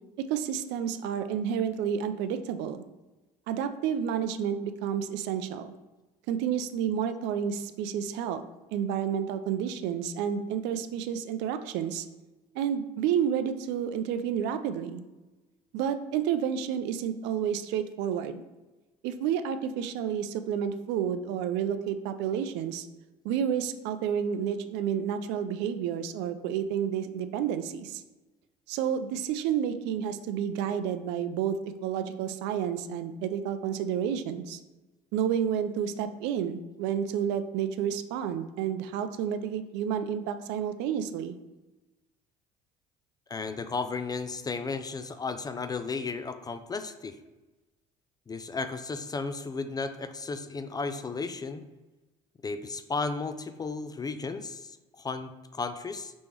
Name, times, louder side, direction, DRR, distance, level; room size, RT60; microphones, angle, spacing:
voice 1, 0.2-2.8 3.5-5.7 6.3-8.4 8.7-12.1 12.5-15.0 15.7-18.4 19.0-22.9 23.2-28.0 28.7-34.6 35.1-41.4, right 8 dB, 65° right, 10 dB, 0.4 m, -30 dB
voice 2, 43.3-47.2 48.3-51.6 52.4-56.1, left 4 dB, 20° left, 10 dB, 0.3 m, -34 dB
5.2 x 3.4 x 3.0 m, 1.1 s
hypercardioid pair, 65°, 20 cm